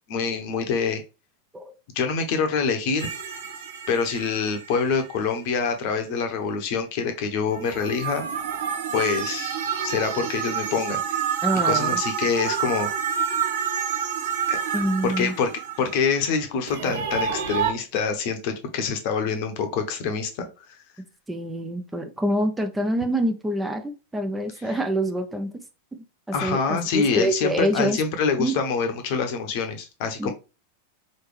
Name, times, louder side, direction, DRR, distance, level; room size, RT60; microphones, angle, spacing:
voice 1, 0.1-1.0 1.9-3.1 3.9-8.2 8.9-11.2 11.6-12.9 14.5-14.6 15.0-15.5 15.8-20.8 26.3-30.3, left 5 dB, 45° left, 6 dB, 0.9 m, -26 dB
sound 1, 3.0-5.3 7.5-16.3 16.7-17.7, right 8 dB, 60° right, 0.8 m, -28 dB
voice 2, 11.4-12.0 14.7-15.3 21.3-25.5 26.3-28.0 28.4-28.5 30.2-30.3, right 1 dB, 10° right, 5 dB, 0.6 m, -26 dB
4.2 x 3.3 x 3.2 m, 0.29 s
figure-of-eight pair, 90°, 0 cm